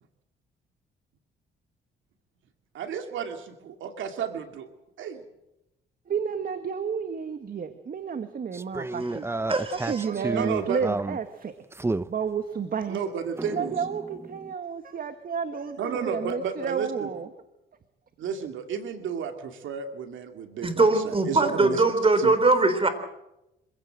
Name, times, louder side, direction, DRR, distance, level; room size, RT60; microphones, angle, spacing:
voice 1, 2.7-4.7 5.0-5.2 10.3-10.8 12.9-13.7 15.8-17.1 18.2-21.8 22.2-22.3, right 6 dB, 75° right, 6 dB, 2.4 m, -32 dB
voice 2, 6.1-9.3 9.7-11.5 12.1-13.1 13.5-17.3, right 6 dB, 45° right, 9 dB, 1.7 m, -31 dB
sound 1, 8.5-11.2 11.7-12.1 13.4-14.5, right 2 dB, 10° right, 0.7 m, -31 dB
voice 3, 9.5-10.1 20.6-22.9, right 3 dB, 30° right, 10 dB, 3.9 m, -21 dB
26.0 x 16.0 x 7.8 m, 0.91 s
cardioid pair, 90°, 20 cm